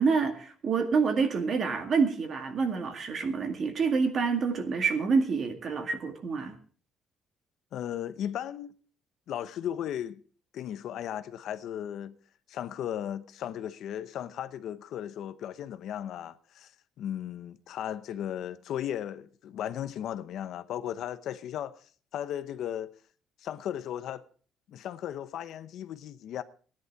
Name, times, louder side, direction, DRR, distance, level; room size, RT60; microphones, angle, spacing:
voice 1, 0.0-6.6, right 5 dB, 40° right, 2.0 m, -27 dB
voice 2, 7.7-8.7 9.3-10.2 10.5-12.2 12.5-16.7 17.0-21.9 22.1-22.9 23.4-24.2 24.7-26.4, left 10 dB, 70° left, 0.8 m, -36 dB
16.5 x 10.5 x 4.7 m
cardioid pair, 135°, 0 cm